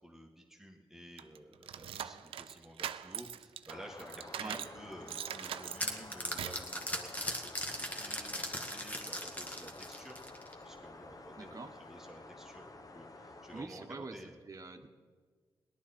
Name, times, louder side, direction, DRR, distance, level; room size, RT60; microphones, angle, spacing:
voice 1, 0.0-7.4 7.6-10.2 10.6-14.4, equal, 5° right, -1 dB, 1.8 m, -52 dB
sound 1, 1.2-4.8 5.1-6.7, right 10 dB, 85° right, 0.4 m, -42 dB
sound 2, 3.7-13.6, left 2 dB, 40° left, 1.0 m, -51 dB
sound 3, 5.1-10.6, equal, 15° left, 1.9 m, -39 dB
voice 2, 11.4-11.7 13.5-14.2 14.5-14.9, right 3 dB, 35° right, 3 dB, 1.3 m, -44 dB
18.0 x 11.5 x 4.4 m, 1.5 s
cardioid pair, 50°, 9 cm